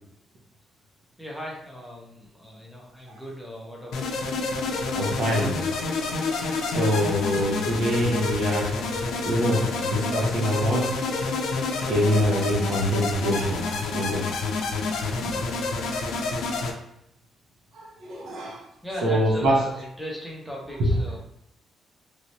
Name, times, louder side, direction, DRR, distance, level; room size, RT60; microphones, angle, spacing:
voice 1, 1.2-4.3 18.8-21.2, equal, ahead, -3 dB, 0.7 m, -37 dB
sound 1, 3.9-16.7, left 3 dB, 90° left, 0.4 m, -28 dB
voice 2, 4.9-5.6 6.6-8.8 9.2-10.9 11.9-14.4 15.2-15.4 16.6-16.7 17.7-18.6 19.0-19.7 20.8-21.0, equal, 65° right, -1 dB, 0.9 m, -25 dB
3.1 x 2.9 x 2.7 m, 0.81 s
cardioid pair, 155°, 0 cm